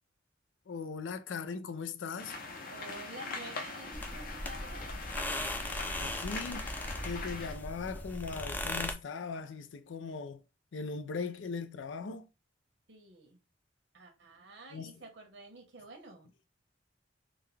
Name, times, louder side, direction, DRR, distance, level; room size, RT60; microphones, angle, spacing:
voice 1, 0.7-2.4 6.0-6.7 7.0-10.4 10.7-12.3 14.7-14.9, left 5 dB, 90° left, 0.4 m, -39 dB
sound 1, 2.2-7.5, left 3 dB, 50° left, 0.7 m, -42 dB
voice 2, 2.7-4.9 12.9-13.4 13.9-16.3, right 2 dB, 75° right, 1.2 m, -50 dB
sound 2, 3.9-8.9, left 1 dB, 10° left, 0.4 m, -38 dB
3.7 x 2.2 x 3.3 m
head